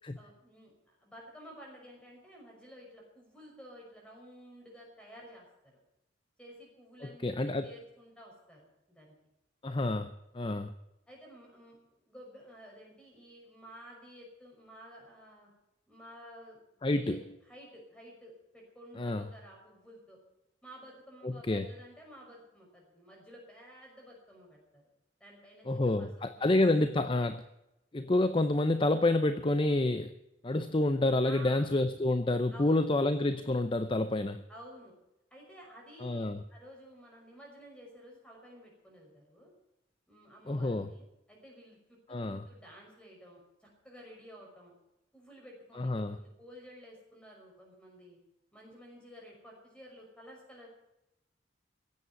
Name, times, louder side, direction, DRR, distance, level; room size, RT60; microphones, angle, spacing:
voice 1, 0.1-0.7 1.0-5.5 5.7-5.8 6.4-9.1 11.1-15.5 15.9-17.2 17.5-20.2 20.6-24.8 25.2-26.7 31.2-31.7 32.5-33.0 34.5-35.0 35.3-36.2 36.5-39.5 40.1-44.7 45.1-48.2 48.5-50.7, equal, 5° left, -1 dB, 5.6 m, -52 dB
voice 2, 7.0-7.7 9.6-10.7 16.8-17.2 19.0-19.3 21.2-21.7 25.7-27.4 27.9-30.1 30.4-34.4 36.0-36.4 40.5-40.9 42.1-42.5 45.8-46.2, left 2 dB, 25° left, 11 dB, 0.6 m, -28 dB
16.0 x 8.5 x 9.4 m, 0.90 s
head